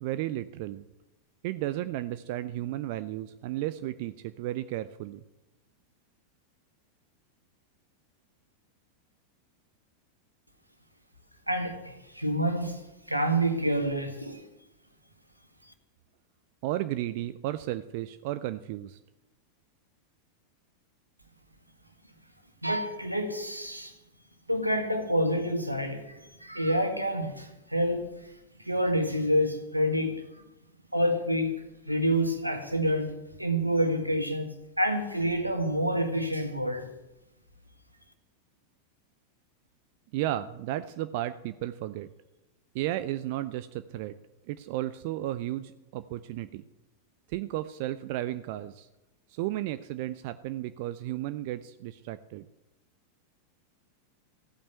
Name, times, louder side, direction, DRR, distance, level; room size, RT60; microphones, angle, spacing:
voice 1, 0.0-0.9 1.4-5.2 16.6-19.0 40.1-42.1 42.7-44.1 44.5-46.6 47.3-48.9 49.3-52.5, right 14 dB, 50° right, 0.5 m, -33 dB
voice 2, 11.5-12.8 13.1-14.4 22.6-23.9 24.5-28.3 28.6-30.2 30.9-33.1 33.4-36.9, equal, 90° right, 1.9 m, -28 dB
15.5 x 8.7 x 7.9 m
figure-of-eight pair, 90°, 0 cm